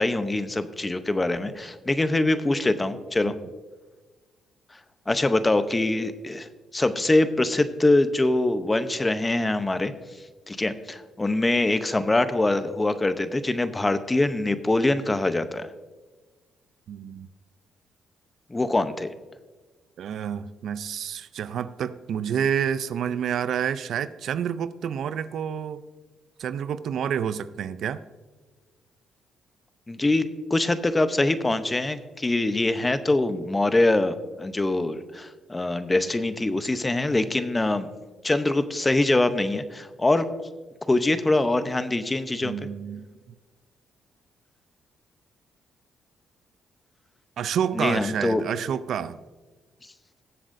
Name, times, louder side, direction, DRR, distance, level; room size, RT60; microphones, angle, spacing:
voice 1, 0.0-3.3 5.1-6.5 6.7-9.9 10.5-15.7 18.5-19.1 29.9-37.9 38.2-40.3 40.9-42.5 47.8-48.4, left 2 dB, 20° left, 11 dB, 0.7 m, -24 dB
voice 2, 16.9-17.3 20.0-25.8 26.4-28.0 42.4-43.1 47.4-49.2, right 8 dB, 70° right, 14 dB, 0.4 m, -29 dB
21.0 x 7.7 x 2.6 m, 1.3 s
cardioid pair, 90°, 0 cm